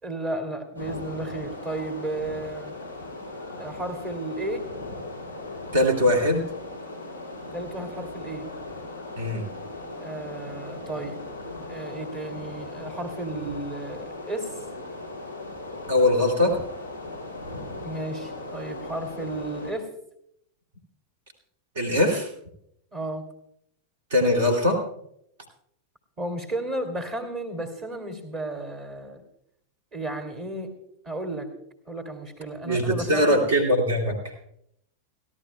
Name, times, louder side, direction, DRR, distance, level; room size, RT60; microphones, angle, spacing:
voice 1, 0.0-2.7 3.6-4.7 7.5-8.5 10.0-11.2 11.7-14.5 17.8-19.9 22.9-23.3 26.2-29.2 29.9-30.7 31.0-31.5 31.9-33.5, right 2 dB, 30° right, 7 dB, 2.7 m, -33 dB
sound 1, 0.7-19.7, left 2 dB, 85° right, 5.2 m, -38 dB
voice 2, 5.7-6.4 9.2-9.4 15.9-16.6 21.7-22.3 24.1-24.8 32.6-34.2, left 1 dB, 60° right, 3 dB, 2.7 m, -21 dB
30.0 x 11.5 x 2.3 m, 0.74 s
figure-of-eight pair, 90°, 0 cm